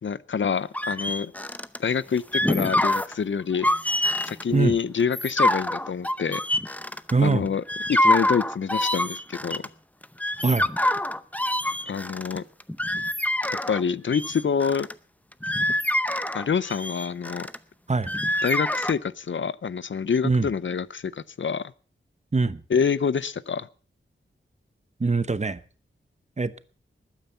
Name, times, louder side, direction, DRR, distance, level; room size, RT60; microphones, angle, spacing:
voice 1, 0.0-1.3 1.8-3.7 4.2-6.4 7.2-7.6 7.9-9.6 11.9-12.4 13.7-14.9 16.3-17.5 18.4-21.7 22.7-23.7, left 6 dB, 65° left, 0.6 m, -26 dB
sound 1, 0.7-1.8 2.2-3.1 3.5-4.4 5.0-7.3 7.7-9.7 10.0-13.8 14.1-14.9 15.3-17.6 18.1-18.9, left 1 dB, 5° left, 0.7 m, -25 dB
voice 2, 7.1-7.5 10.4-10.7 17.9-18.1 20.2-20.5 22.3-22.6 25.0-25.6 26.4-26.6, right 4 dB, 35° right, 0.9 m, -23 dB
20.0 x 9.2 x 5.6 m
wide cardioid pair, 100°, 21 cm